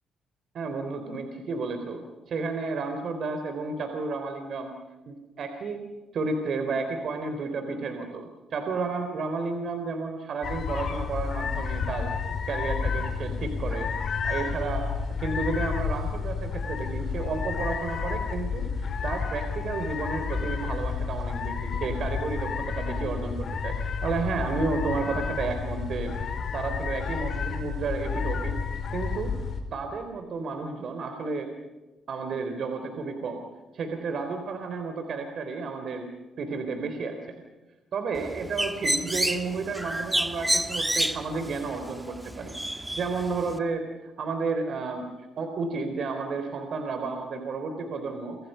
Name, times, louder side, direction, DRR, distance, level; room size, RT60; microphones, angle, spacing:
voice 1, 0.5-4.7 5.1-5.8 6.1-12.1 12.5-13.9 14.2-14.9 15.2-23.8 24.0-28.5 28.9-29.3 29.7-31.5 32.1-33.4 33.7-36.1 36.4-37.2 37.9-45.1 45.4-48.4, right 4 dB, 60° right, 6 dB, 3.6 m, -32 dB
sound 1, 10.4-29.6, left 5 dB, 55° left, 5.0 m, -31 dB
Bird, 38.2-43.6, right 1 dB, 10° right, 1.7 m, -30 dB
29.0 x 25.5 x 5.6 m, 1.2 s
cardioid pair, 90°, 0 cm